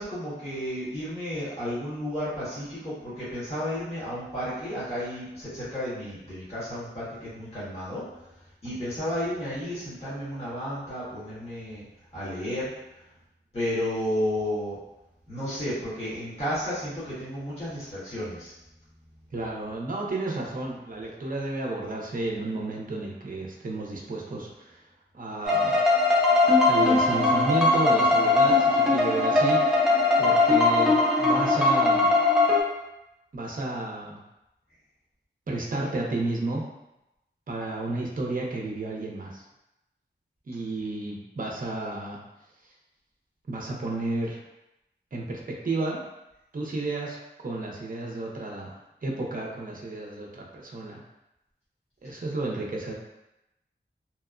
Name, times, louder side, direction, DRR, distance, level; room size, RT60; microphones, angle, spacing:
voice 1, 0.0-8.2 8.6-11.8 12.1-12.7 13.5-14.8 15.3-18.5, equal, 30° left, -12 dB, 1.2 m, -32 dB
voice 2, 19.3-24.8 25.1-25.7 26.7-29.6 30.2-32.1 33.3-34.2 35.5-36.6 37.5-39.4 40.5-42.2 43.5-44.4 45.1-46.0 46.5-47.2 47.4-51.0 52.0-52.9, right 2 dB, 45° right, -1 dB, 0.5 m, -32 dB
sound 1, 25.4-32.6, left 3 dB, 5° right, 0.5 m, -20 dB
2.8 x 2.0 x 2.4 m, 0.91 s
wide cardioid pair, 80°, 19 cm